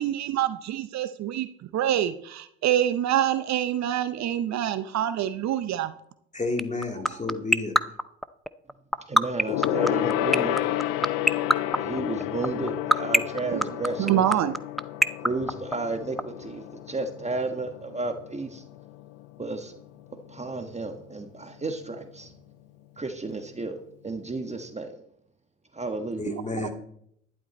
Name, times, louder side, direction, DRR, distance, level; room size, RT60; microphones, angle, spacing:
voice 1, 0.0-1.5 1.7-5.9 13.5-13.6 14.0-14.6 26.3-26.7, right 11 dB, 50° right, 12 dB, 0.7 m, -26 dB
voice 2, 6.3-7.8 26.2-26.7, left 3 dB, 20° left, 3 dB, 2.6 m, -31 dB
sound 1, 6.6-16.2, equal, ahead, 0.5 m, -19 dB
voice 3, 9.1-10.6 11.8-14.2 15.2-16.6 16.9-18.6 19.4-19.7 20.3-22.3 23.0-23.8 24.0-24.9 25.8-26.2, right 3 dB, 20° right, 6 dB, 1.3 m, -32 dB
Gong, 9.5-19.3 19.6-19.8 20.1-20.2, left 13 dB, 65° left, 0.7 m, -31 dB
11.5 x 10.5 x 4.2 m, 0.71 s
hypercardioid pair, 60°, 36 cm